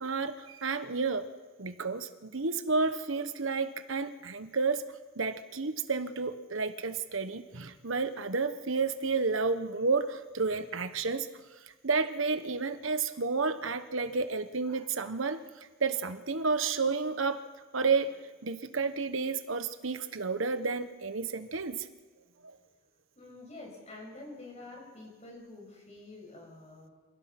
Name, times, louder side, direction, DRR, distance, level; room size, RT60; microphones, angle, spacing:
voice 1, 0.0-1.3 1.6-4.8 5.2-11.3 11.8-17.4 17.7-18.1 18.4-21.9, right 4 dB, 80° right, 9 dB, 1.2 m, -31 dB
voice 2, 23.2-26.9, left 2 dB, 35° left, 0 dB, 6.9 m, -47 dB
28.0 x 16.0 x 6.0 m, 1.4 s
head